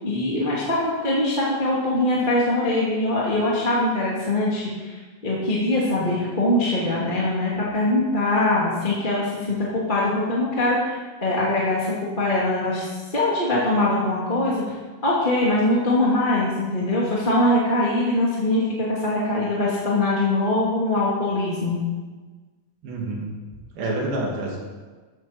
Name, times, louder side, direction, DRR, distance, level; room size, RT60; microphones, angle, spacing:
voice 1, 0.0-4.9 5.2-14.7 15.0-21.8, left 1 dB, 15° left, -6 dB, 1.9 m, -22 dB
voice 2, 22.8-23.3 23.7-24.6, right 2 dB, 75° right, -2 dB, 4.3 m, -27 dB
14.5 x 12.5 x 4.3 m, 1.4 s
omnidirectional pair, 4.3 m